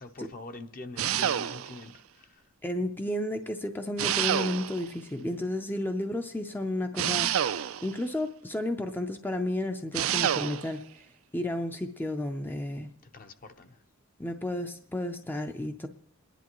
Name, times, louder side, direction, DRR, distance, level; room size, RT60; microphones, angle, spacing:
voice 1, 0.0-2.4 13.0-13.8, left 2 dB, 40° left, 0.8 m, -45 dB
sound 1, 1.0-1.9 4.0-4.9 7.0-8.0 9.9-10.7, right 10 dB, 75° right, 0.4 m, -28 dB
voice 2, 2.6-7.3 7.8-10.8 11.3-12.9 14.2-15.9, left 1 dB, 10° left, 0.5 m, -32 dB
28.0 x 11.0 x 3.0 m
head